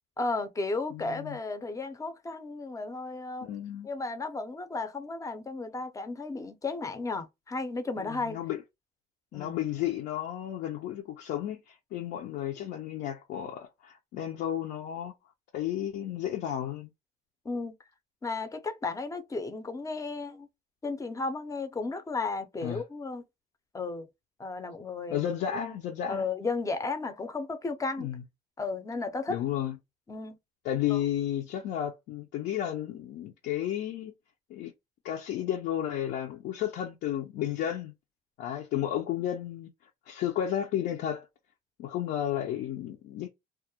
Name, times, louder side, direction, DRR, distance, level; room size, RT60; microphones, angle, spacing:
voice 1, 0.2-3.5 3.8-8.4 9.3-9.6 17.4-17.8 18.2-20.5 20.8-23.2 23.7-24.1 24.4-25.2 25.5-25.8 26.1-28.1 28.6-29.4 30.1-30.4 30.9-31.0, left 3 dB, 20° left, 0.5 m, -34 dB
voice 2, 0.9-1.4 3.4-3.9 8.0-8.6 9.3-15.1 15.5-16.9 22.6-22.8 25.1-26.2 28.0-28.2 29.3-29.8 30.6-34.1 34.5-34.7 35.0-37.9 38.4-39.7 40.1-41.3 41.8-43.3, left 11 dB, 75° left, 0.5 m, -32 dB
2.3 x 2.0 x 2.7 m
cardioid pair, 110°, 17 cm